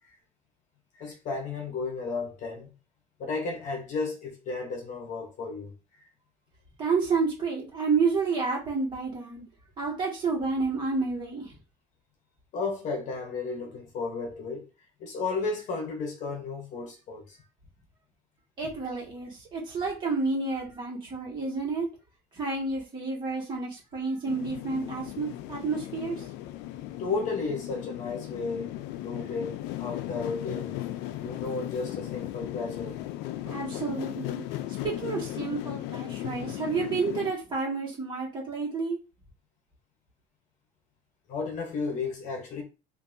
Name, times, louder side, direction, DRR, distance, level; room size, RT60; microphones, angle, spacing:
voice 1, 1.0-2.7 3.2-5.7 12.5-14.6 15.0-17.4 27.0-28.7 29.0-30.7 31.2-33.0 41.3-42.6, left 4 dB, 45° left, 0.9 m, -33 dB
voice 2, 6.8-9.4 9.8-11.5 18.6-21.9 22.3-26.2 33.5-34.4 34.7-39.0, right 4 dB, 25° right, 1.7 m, -30 dB
sound 1, 24.3-37.3, left 14 dB, 75° left, 0.5 m, -36 dB
5.3 x 2.6 x 2.6 m
cardioid pair, 170°, 18 cm